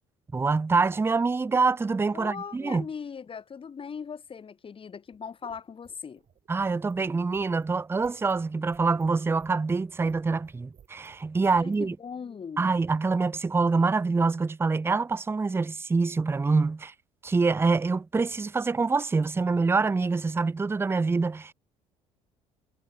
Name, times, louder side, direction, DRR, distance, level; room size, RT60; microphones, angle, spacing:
voice 1, 0.3-2.9 6.5-11.9 12.6-16.9 17.2-21.5, right 4 dB, 15° right, 0.5 m, -25 dB
voice 2, 2.1-6.2 11.5-12.6, left 6 dB, 30° left, 1.4 m, -39 dB
sound 1, 5.0-11.9, right 8 dB, 40° right, 6.8 m, -59 dB
figure-of-eight pair, 55°, 18 cm